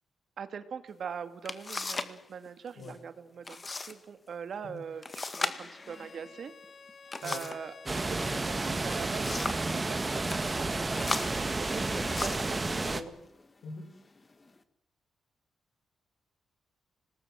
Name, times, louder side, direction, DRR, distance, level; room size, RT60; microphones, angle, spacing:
voice 1, 0.4-6.5 7.2-10.9 11.3-12.4 12.8-12.9, right 7 dB, 60° right, 11 dB, 2.2 m, -42 dB
sound 1, 0.9-1.0 1.4-2.2 2.5-2.9 3.4-4.0 4.3-4.4 5.0-7.7 8.7-9.7 10.1-10.4 10.9-12.6 13.3-13.5 14.1-14.6, left 3 dB, 25° left, 1.9 m, -37 dB
Bowed string instrument, 5.6-12.4, left 4 dB, 50° left, 2.4 m, -51 dB
sound 2, 7.9-13.0, right 3 dB, 25° right, 2.0 m, -31 dB
voice 2, 11.8-12.3 12.6-13.2 13.6-13.9, left 3 dB, 75° left, 9 dB, 5.4 m, -44 dB
26.0 x 19.5 x 7.6 m, 0.84 s
cardioid pair, 105°, 0 cm